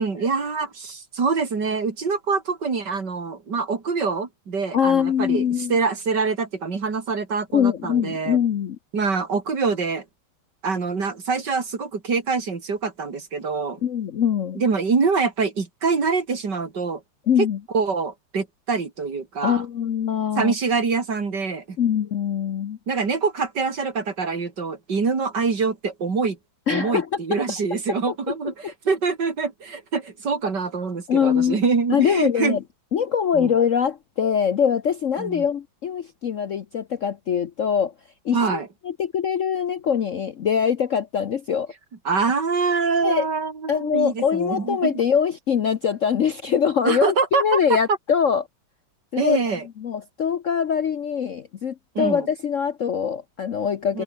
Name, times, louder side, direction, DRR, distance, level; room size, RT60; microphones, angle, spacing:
voice 1, 0.0-5.4 5.7-8.4 8.9-10.0 10.6-13.8 14.6-17.0 17.7-19.6 20.4-21.8 22.9-26.4 26.7-32.6 33.3-33.5 35.2-35.4 38.3-38.7 42.1-44.9 46.8-47.6 49.2-49.6 52.0-52.3 53.9-54.0, right 4 dB, 60° right, 3.5 m, -25 dB
voice 2, 4.7-5.8 7.5-8.8 13.8-14.6 17.3-17.6 19.4-20.5 21.8-22.8 26.7-27.4 31.1-31.6 31.9-32.6 32.9-37.9 38.2-38.6 38.8-41.7 43.0-43.3 43.7-48.5 49.1-49.4 49.8-54.0, left 7 dB, 55° left, 0.9 m, -23 dB
omnidirectional pair, 2.1 m